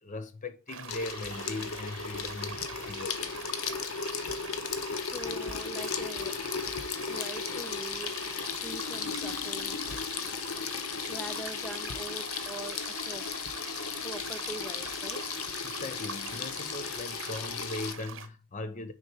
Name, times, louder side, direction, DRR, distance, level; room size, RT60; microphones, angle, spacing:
voice 1, 0.0-3.3 15.6-18.9, left 2 dB, 35° left, 0.8 m, -39 dB
sound 1, 0.7-18.3, right 6 dB, 65° right, 1.0 m, -44 dB
Water tap faucet / Sink (filling or washing), 0.9-18.0, left 6 dB, 90° left, 0.8 m, -35 dB
voice 2, 5.0-6.3 7.1-8.2 8.5-9.8 11.1-13.2 14.0-15.8, right 2 dB, ahead, 0.4 m, -43 dB
6.4 x 4.6 x 4.7 m
head